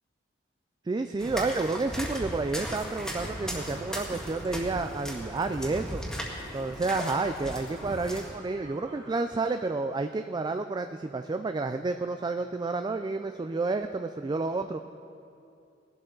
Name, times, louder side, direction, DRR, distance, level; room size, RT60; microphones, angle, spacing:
voice 1, 0.9-6.0 6.5-14.8, right 3 dB, 25° right, 8 dB, 0.3 m, -30 dB
sound 1, 1.2-8.4, equal, 5° left, 1.8 m, -37 dB
sound 2, 2.7-9.7, right 2 dB, 70° right, 1.8 m, -50 dB
19.0 x 12.0 x 3.9 m, 2.6 s
head